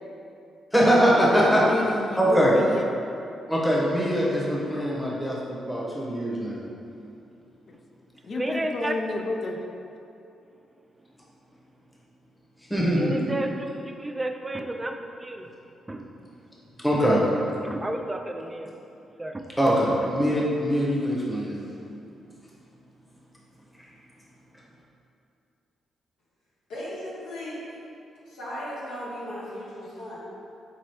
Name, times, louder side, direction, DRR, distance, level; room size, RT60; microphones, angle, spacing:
voice 1, 0.7-1.6 2.2-2.5 3.5-6.7 12.7-13.3 16.8-17.2 19.6-21.6, equal, 5° left, -6 dB, 1.0 m, -22 dB
voice 2, 1.3-2.9 7.7-7.8 8.2-9.6, left 3 dB, 55° left, 2 dB, 0.4 m, -30 dB
voice 3, 8.3-8.9 12.9-15.5 15.9-16.1 16.9-18.7 19.2-19.4 20.0-20.1, right 1 dB, 25° right, 5 dB, 0.3 m, -33 dB
voice 4, 26.7-27.6 28.3-30.2, equal, 80° left, -9 dB, 1.1 m, -36 dB
4.3 x 3.0 x 2.9 m, 2.7 s
hypercardioid pair, 45°, 0 cm